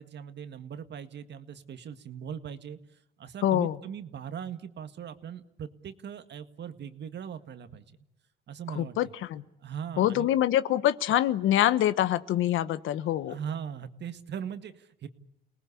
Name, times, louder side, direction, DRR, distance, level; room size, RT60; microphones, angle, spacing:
voice 1, 0.0-7.9 8.5-8.9 9.6-10.3 13.3-15.1, right 8 dB, 60° right, 10 dB, 1.8 m, -40 dB
voice 2, 3.4-3.8 8.7-9.5 10.0-13.4, left 12 dB, 85° left, 15 dB, 1.1 m, -25 dB
29.0 x 19.0 x 8.4 m, 0.82 s
cardioid pair, 90°, 20 cm